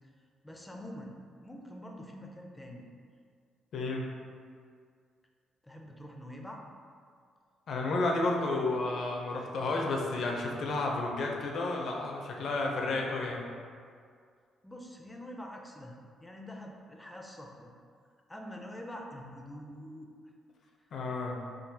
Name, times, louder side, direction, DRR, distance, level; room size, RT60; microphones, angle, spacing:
voice 1, 0.4-1.1 1.4-2.9 5.6-6.6 14.6-17.7 18.3-20.1 20.8-20.9, equal, 10° left, 1 dB, 0.4 m, -45 dB
voice 2, 3.7-4.1 7.7-13.4 20.9-21.4, left 2 dB, 65° left, 0 dB, 0.5 m, -31 dB
3.7 x 2.3 x 2.7 m, 2.1 s
cardioid pair, 90°, 0 cm